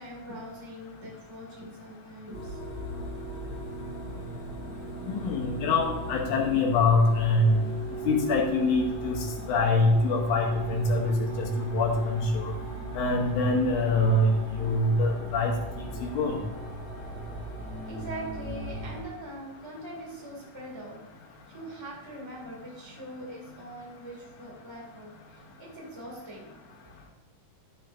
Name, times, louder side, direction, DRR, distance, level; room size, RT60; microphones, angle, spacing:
voice 1, 0.0-2.6 7.5-7.6 9.4-9.5 17.8-21.0 21.5-26.6, right 1 dB, 10° right, -3 dB, 1.8 m, -42 dB
sound 1, 2.3-19.0, right 1 dB, 25° right, 1.5 m, -38 dB
voice 2, 5.1-7.6 8.1-12.5 12.9-16.4, left 2 dB, 75° left, -2 dB, 2.4 m, -25 dB
10.5 x 8.2 x 2.6 m, 1.0 s
omnidirectional pair, 3.7 m